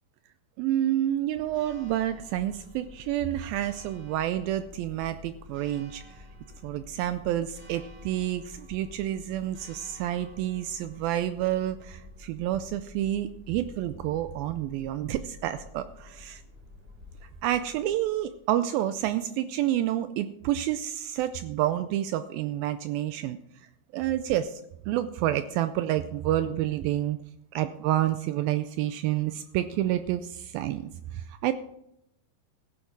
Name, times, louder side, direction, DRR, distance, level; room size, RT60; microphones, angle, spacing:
voice 1, 0.6-6.0 6.6-16.4 17.4-23.4 23.9-27.2 27.5-31.5, right 12 dB, 90° right, 11 dB, 2.0 m, -29 dB
Church bell, 1.2-18.5, left 2 dB, 5° right, 5.1 m, -50 dB
16.0 x 10.0 x 4.6 m, 0.81 s
omnidirectional pair, 4.8 m